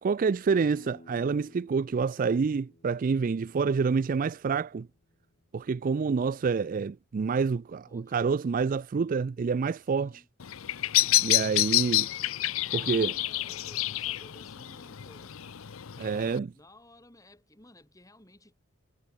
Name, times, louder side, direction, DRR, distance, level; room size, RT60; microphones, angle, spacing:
voice 1, 0.0-4.9 5.5-10.1 11.2-12.1 12.7-13.1 16.0-16.5, right 5 dB, 40° right, 0.3 m, -27 dB
sound 1, 0.7-6.3, left 1 dB, 40° left, 2.6 m, -58 dB
voice 2, 7.9-8.4 9.8-10.3 12.6-15.5 16.5-18.5, left 1 dB, 15° left, 6.4 m, -55 dB
Bird vocalization bird call bird song, 10.4-16.4, left 15 dB, 70° left, 0.6 m, -28 dB
head